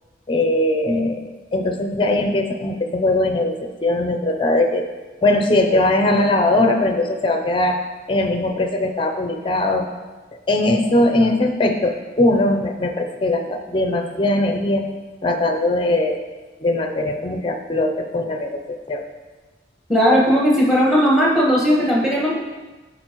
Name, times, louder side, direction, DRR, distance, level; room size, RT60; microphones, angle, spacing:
voice 1, 0.3-3.5 3.8-4.9 5.2-7.8 8.1-9.9 10.5-14.8 15.2-16.2 16.6-19.0, left 2 dB, 25° left, 5 dB, 0.6 m, -20 dB
voice 2, 19.9-22.4, equal, ahead, -3 dB, 1.4 m, -16 dB
11.0 x 4.2 x 3.0 m, 1.2 s
head